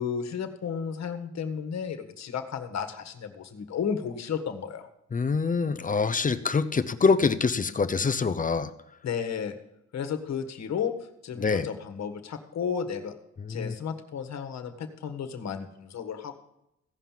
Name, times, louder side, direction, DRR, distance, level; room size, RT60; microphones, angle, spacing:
voice 1, 0.0-4.9 9.0-9.6 9.9-10.9 11.2-13.1 13.5-16.3, left 7 dB, 60° left, 9 dB, 1.6 m, -33 dB
voice 2, 5.1-8.7 11.4-11.7 13.4-13.7, left 4 dB, 25° left, 12 dB, 0.7 m, -25 dB
16.0 x 5.6 x 7.5 m, 0.82 s
cardioid pair, 90°, 30 cm